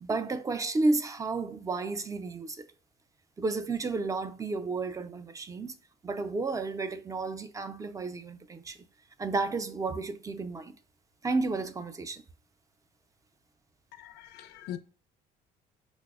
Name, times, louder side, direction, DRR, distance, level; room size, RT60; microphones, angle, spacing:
voice 1, 0.0-2.7 3.4-5.7 6.0-8.8 9.2-10.8 11.2-12.2, right 3 dB, 20° right, 0.4 m, -32 dB
voice 2, 13.9-14.8, left 11 dB, 75° left, 0.4 m, -42 dB
5.9 x 2.0 x 2.3 m
cardioid pair, 110°, 17 cm